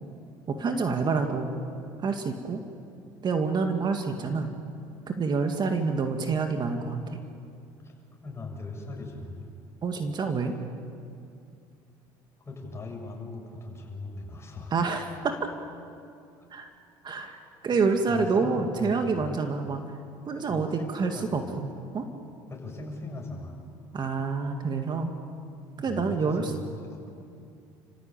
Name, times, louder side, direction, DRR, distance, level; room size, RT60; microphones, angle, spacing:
voice 1, 0.5-1.5 2.0-2.6 3.2-4.5 5.1-7.2 9.8-10.5 14.7-15.3 16.5-16.7 17.0-17.4 17.6-19.8 20.3-22.1 23.9-25.1 25.8-26.5, right 4 dB, 40° right, 5 dB, 2.1 m, -27 dB
voice 2, 8.2-9.5 12.4-14.9 17.7-17.8 18.1-19.3 20.3-21.3 22.5-23.6 25.9-27.1, left 3 dB, 25° left, 0 dB, 7.6 m, -39 dB
30.0 x 15.5 x 8.8 m, 2.5 s
hypercardioid pair, 75°, 11 cm